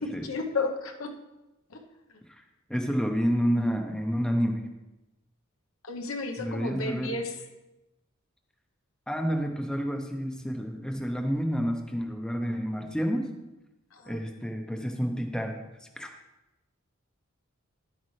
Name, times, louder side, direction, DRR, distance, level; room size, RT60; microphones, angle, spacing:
voice 1, 0.0-1.1 1.7-1.8 5.8-7.4 13.9-14.2, left 3 dB, 75° left, 3 dB, 1.0 m, -33 dB
voice 2, 2.7-4.6 6.4-7.1 9.1-13.3 14.1-16.1, equal, 5° left, 3 dB, 0.7 m, -29 dB
11.0 x 8.4 x 3.2 m, 0.99 s
head